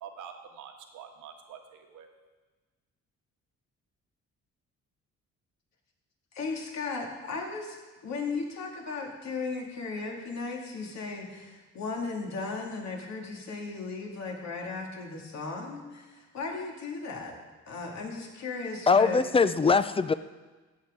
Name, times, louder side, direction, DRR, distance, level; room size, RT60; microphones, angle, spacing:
voice 1, 0.0-2.1, right 7 dB, 80° right, 4 dB, 1.4 m, -46 dB
voice 2, 6.3-7.8 8.0-17.4 17.7-19.2, left 4 dB, 65° left, 0 dB, 2.3 m, -36 dB
voice 3, 18.9-20.1, left 4 dB, 20° left, 13 dB, 0.4 m, -22 dB
14.5 x 8.6 x 3.7 m, 1.3 s
cardioid pair, 90°, 30 cm